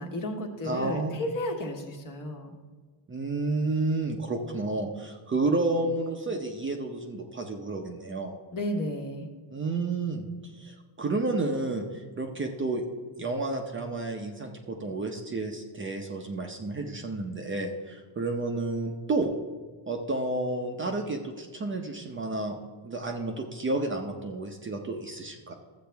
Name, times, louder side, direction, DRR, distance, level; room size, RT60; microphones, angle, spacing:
voice 1, 0.0-2.5 8.5-9.3, left 1 dB, 40° left, 2 dB, 1.4 m, -33 dB
voice 2, 0.6-1.2 3.1-8.4 9.5-10.3 10.5-12.8 13.2-19.3 19.9-22.6 22.8-25.5, right 2 dB, 25° right, 3 dB, 0.7 m, -31 dB
13.5 x 7.6 x 3.4 m, 1.4 s
cardioid pair, 120°, 50 cm